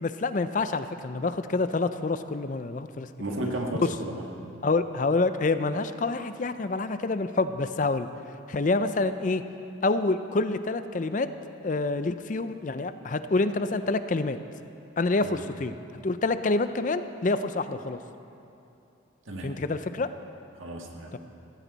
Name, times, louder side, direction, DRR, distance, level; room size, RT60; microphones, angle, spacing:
voice 1, 0.0-3.1 3.8-3.9 4.6-8.1 8.5-9.4 9.8-11.3 11.6-14.4 15.0-15.7 16.0-18.0 19.4-20.1, left 3 dB, 40° left, 11 dB, 0.5 m, -27 dB
voice 2, 3.2-4.2 15.2-15.4 19.2-19.5 20.6-21.2, right 1 dB, 85° right, 1 dB, 1.7 m, -33 dB
15.0 x 15.0 x 4.1 m, 2.7 s
head